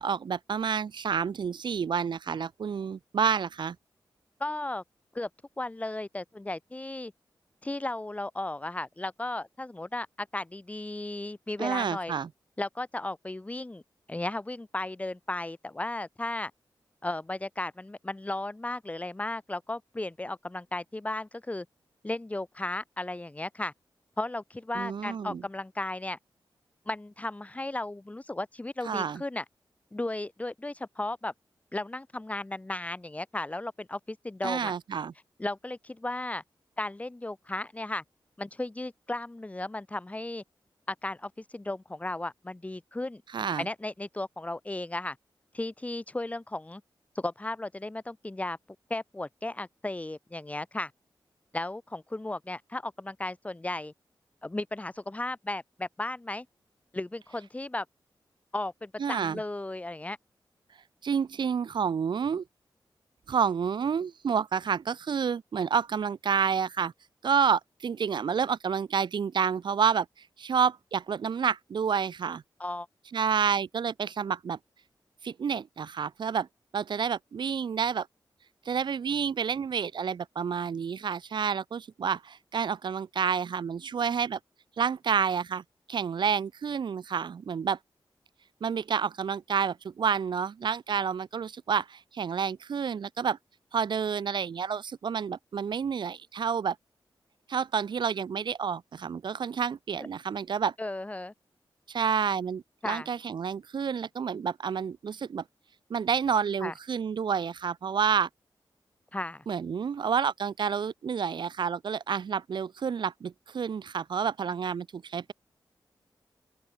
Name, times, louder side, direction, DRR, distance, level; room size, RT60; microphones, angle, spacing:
voice 1, 0.0-3.8 11.6-12.3 24.7-25.4 28.8-29.2 34.4-35.1 43.3-43.6 59.0-59.4 61.0-62.4 63.3-66.9 67.2-70.1 70.4-72.4 73.1-74.6 75.2-76.5 76.7-78.1 78.6-84.4 84.8-85.6 85.9-87.8 88.6-93.4 93.7-96.8 97.5-100.7 101.9-105.4 105.9-108.3 109.5-115.3, right 6 dB, 65° right, 0.9 m, -29 dB
voice 2, 4.4-4.8 5.1-5.3 5.6-7.1 7.6-12.2 12.6-13.8 14.1-16.5 17.0-21.7 22.0-23.7 24.2-26.2 26.9-29.4 29.9-31.3 31.7-34.7 35.4-36.4 36.8-38.0 38.4-40.4 40.9-43.2 43.6-45.2 45.5-46.8 47.2-48.6 48.9-50.9 51.5-53.9 54.4-56.5 56.9-57.9 58.5-60.2 72.6-72.9 100.8-101.3 102.8-103.1 106.6-106.7 109.1-109.5, left 2 dB, 15° left, 3.9 m, -35 dB
open air
wide cardioid pair, 130°, 8 cm